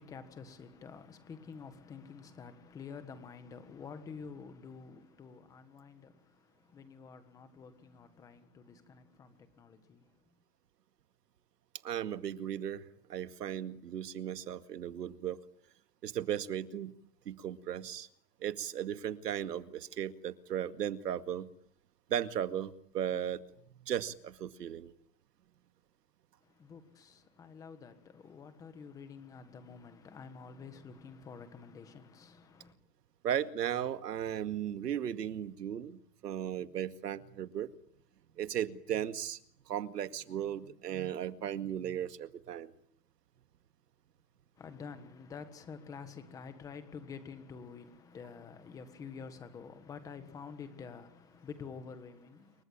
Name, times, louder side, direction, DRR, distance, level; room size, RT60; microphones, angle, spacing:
voice 1, 0.0-10.2 26.4-32.8 44.6-52.6, left 5 dB, 5° left, 1.5 m, -49 dB
voice 2, 11.8-12.8 13.1-15.4 16.0-16.9 17.3-18.1 18.4-21.5 22.1-23.4 23.8-24.9 33.2-37.7 38.4-39.4 39.7-42.7, right 10 dB, 80° right, 2.2 m, -36 dB
28.0 x 24.0 x 8.8 m
hypercardioid pair, 180°, 47 cm